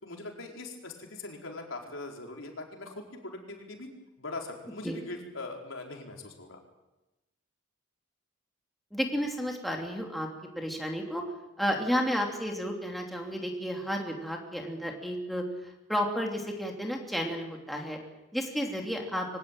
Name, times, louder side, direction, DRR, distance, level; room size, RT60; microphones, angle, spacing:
voice 1, 0.0-3.9 4.2-6.6, left 2 dB, 75° left, 1 dB, 4.6 m, -41 dB
voice 2, 8.9-10.3 10.5-11.2 11.6-15.4 15.9-18.0 18.3-19.3, equal, ahead, 0 dB, 3.0 m, -32 dB
24.5 x 18.0 x 9.0 m, 1.0 s
head